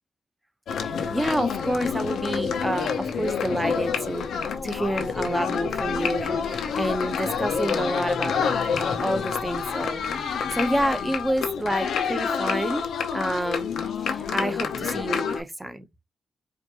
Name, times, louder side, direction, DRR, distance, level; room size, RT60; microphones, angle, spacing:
sound 1, 0.7-15.4, left 6 dB, 85° left, 0.8 m, -28 dB
voice 1, 0.8-12.8 13.1-13.7 14.0-15.9, right 1 dB, 10° right, 1.0 m, -29 dB
5.0 x 2.6 x 3.0 m
cardioid pair, 80°, 0 cm